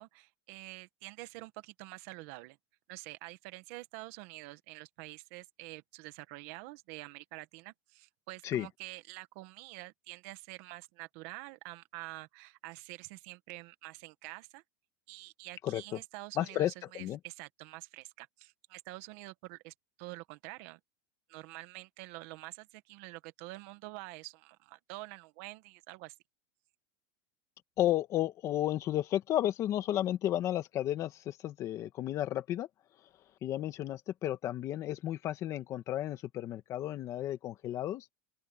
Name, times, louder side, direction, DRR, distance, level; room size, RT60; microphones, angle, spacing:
voice 1, 0.0-2.6 2.9-14.6 15.1-20.8 21.3-26.1, right 21 dB, 50° right, 1.6 m, -47 dB
voice 2, 15.6-16.0 16.4-17.2 27.8-32.7 33.4-38.1, left 13 dB, 30° left, 1.7 m, -33 dB
open air
supercardioid pair, 165°, 11 cm